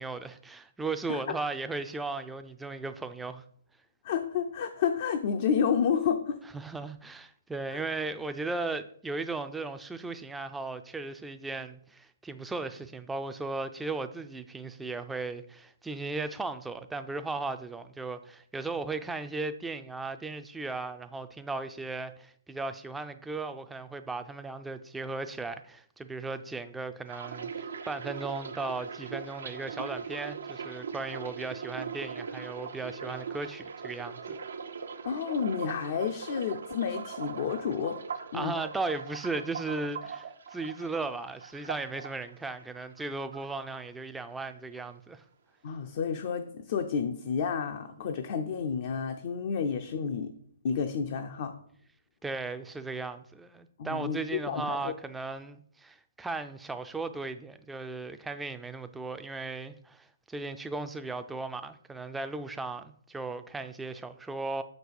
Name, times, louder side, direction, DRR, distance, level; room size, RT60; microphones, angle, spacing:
voice 1, 0.0-3.4 6.5-34.4 38.3-45.2 52.2-64.6, right 3 dB, 5° right, 0.4 m, -36 dB
voice 2, 4.0-6.4 7.7-7.8 35.0-38.0 38.3-38.6 45.6-50.3 50.6-51.6 53.8-54.9, left 7 dB, 50° left, 0.5 m, -30 dB
sound 1, 27.1-43.0 43.3-44.2 44.5-44.9, right 6 dB, 75° right, 0.7 m, -40 dB
6.1 x 5.3 x 4.7 m
hypercardioid pair, 135°, 0 cm